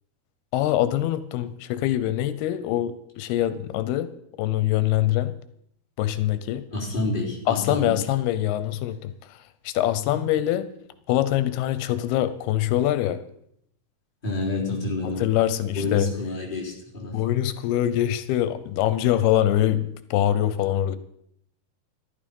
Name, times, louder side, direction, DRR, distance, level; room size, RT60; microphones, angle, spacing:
voice 1, 0.5-4.1 4.4-5.4 6.0-6.6 7.5-9.4 9.7-10.7 11.1-13.2 15.2-16.1 17.1-21.0, left 13 dB, 85° left, 13 dB, 2.7 m, -24 dB
voice 2, 6.7-8.0 10.1-10.2 14.2-15.4 15.7-17.2, left 2 dB, 15° left, -3 dB, 3.6 m, -29 dB
14.5 x 12.0 x 5.3 m, 0.72 s
omnidirectional pair, 4.5 m